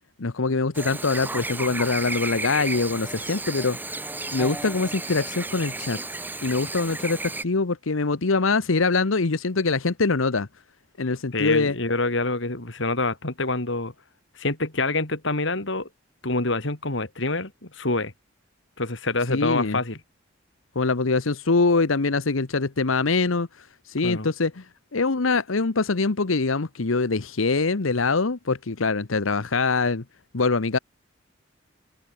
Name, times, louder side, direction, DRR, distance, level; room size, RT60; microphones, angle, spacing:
voice 1, 0.2-3.8 4.3-6.0 6.4-10.5 11.0-11.8 19.3-19.8 20.7-23.5 23.9-24.6 24.9-30.0 30.3-30.8, left 3 dB, 85° left, 1.0 m, -23 dB
Chirp tweet / Buzz, 0.7-7.4, right 2 dB, 10° right, 1.3 m, -33 dB
voice 2, 11.3-13.9 14.3-15.9 16.2-18.1 18.8-20.0 24.0-24.3, left 2 dB, 65° left, 3.3 m, -26 dB
head